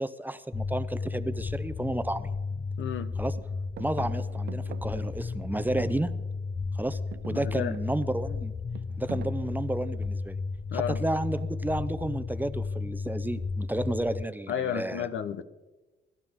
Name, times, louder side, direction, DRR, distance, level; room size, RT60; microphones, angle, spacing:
voice 1, 0.0-2.3 3.2-3.4 3.8-6.1 6.7-7.0 7.3-8.5 9.0-10.4 10.7-15.1, right 1 dB, 10° right, 12 dB, 0.7 m, -31 dB
sound 1, 0.5-14.2, left 4 dB, 25° left, 0.6 m, -33 dB
sound 2, 2.0-2.1 2.5-3.1 3.3-6.5 6.8-10.4 11.4-11.8, right 11 dB, 60° right, 0.6 m, -47 dB
voice 2, 2.8-3.1 7.3-7.8 10.7-11.0 14.5-15.4, left 9 dB, 75° left, 12 dB, 0.9 m, -32 dB
25.0 x 12.0 x 3.7 m, 1.1 s
cardioid pair, 90°, 20 cm